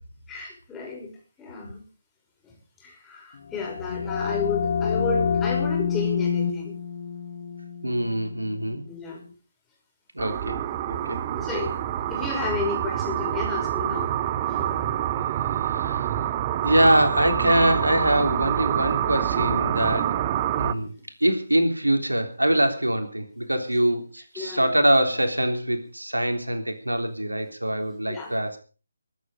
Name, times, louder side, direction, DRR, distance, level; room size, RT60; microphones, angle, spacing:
voice 1, 0.3-1.1 1.4-1.8 2.4-2.5 2.8-6.7 8.9-9.2 11.4-11.8 12.1-14.1 14.5-14.8 20.7-20.9 24.4-24.7 27.8-28.3, left 4 dB, 10° left, -1 dB, 5.5 m, -32 dB
sound 1, 3.4-9.0, left 6 dB, 45° left, 2.2 m, -28 dB
voice 2, 7.8-8.8 10.1-10.6 10.9-11.2 15.4-16.2 16.6-20.2 20.6-20.9 21.2-28.6, right 1 dB, 85° right, 6 dB, 3.5 m, -24 dB
sound 2, 10.2-20.7, right 11 dB, 25° right, 1.0 m, -26 dB
22.5 x 9.4 x 5.1 m, 0.37 s
figure-of-eight pair, 150°, 0 cm